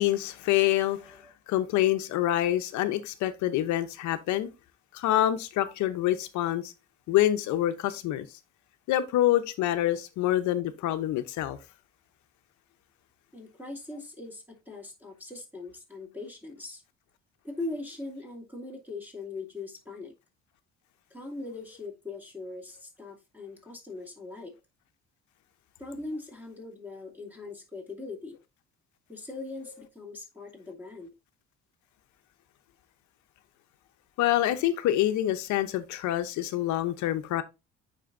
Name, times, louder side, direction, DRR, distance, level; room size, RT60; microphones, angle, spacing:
voice 1, 0.0-1.2 1.5-4.5 4.9-6.7 7.1-8.3 8.9-11.6 34.2-37.4, left 13 dB, 75° left, 0.8 m, -26 dB
voice 2, 1.0-1.3 13.3-16.8 17.4-20.1 21.1-24.5 25.8-28.4 29.1-31.1, left 2 dB, 5° right, 2.5 m, -40 dB
9.3 x 4.2 x 2.6 m
cardioid pair, 105°, 30 cm